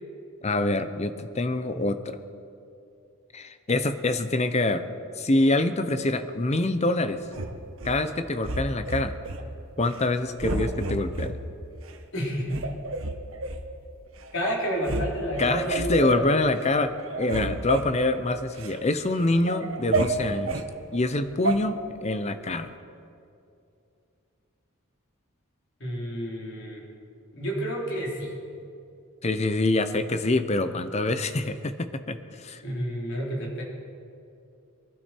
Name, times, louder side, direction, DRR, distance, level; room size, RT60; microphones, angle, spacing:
voice 1, 0.4-2.2 3.3-4.9 5.2-7.2 7.8-9.2 9.8-11.4 15.4-20.6 20.9-22.7 29.2-32.6, left 2 dB, 30° left, 10 dB, 0.7 m, -25 dB
sound 1, 7.3-8.0 8.4-9.4 9.8-10.1 10.4-11.3 11.9-12.0 12.5-13.6 14.2-14.3 14.6-15.1 15.3-16.0 16.4-16.7 17.0-18.8 19.2-20.7 21.4-21.6, right 2 dB, 65° right, 1.1 m, -30 dB
voice 2, 12.1-12.6 14.3-16.3 25.8-26.8 27.3-28.4 32.6-33.6, equal, 55° left, -2 dB, 3.6 m, -30 dB
23.5 x 12.0 x 4.5 m, 2.6 s
head